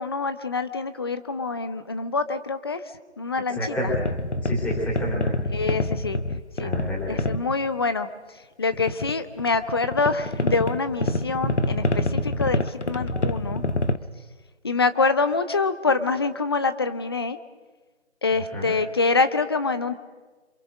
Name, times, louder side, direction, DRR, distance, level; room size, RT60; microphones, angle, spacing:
voice 1, 0.0-2.8 3.2-3.6 5.5-6.2 6.6-6.7 7.1-8.1 8.6-13.6 14.6-17.4 18.2-20.0, left 4 dB, 20° left, 11 dB, 0.9 m, -25 dB
voice 2, 3.5-3.9 4.4-5.2 6.6-7.2 7.4-7.5 18.5-18.7, equal, 5° left, -4 dB, 4.0 m, -29 dB
sound 1, 3.9-7.4 8.7-14.0, left 2 dB, 70° left, 1.6 m, -26 dB
28.0 x 27.0 x 6.4 m, 1.3 s
figure-of-eight pair, 155°, 35 cm